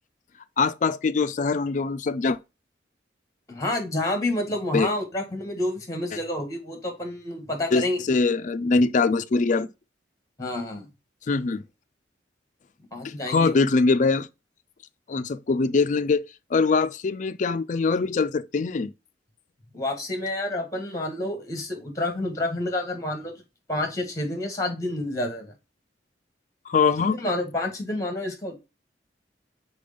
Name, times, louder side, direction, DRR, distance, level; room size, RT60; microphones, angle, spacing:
voice 1, 0.6-2.4 4.7-4.9 7.7-9.7 11.3-11.6 13.0-14.3 15.1-16.2 16.5-18.9 26.7-27.2, left 4 dB, 45° left, 0.4 m, -23 dB
voice 2, 3.5-8.0 10.4-10.9 12.9-13.6 19.7-23.4 23.7-25.5 27.2-28.6, left 1 dB, 20° left, 1.7 m, -29 dB
5.1 x 4.3 x 5.2 m
head